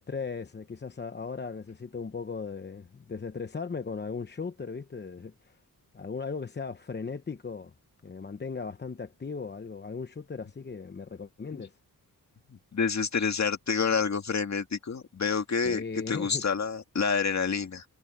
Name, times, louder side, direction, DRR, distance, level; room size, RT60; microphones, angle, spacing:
voice 1, 0.0-5.6 5.9-7.7 8.0-11.8 15.6-16.4, left 5 dB, 30° left, 0.8 m, -37 dB
voice 2, 12.5-17.8, left 5 dB, 45° left, 2.1 m, -28 dB
wide cardioid pair, 155°, 37 cm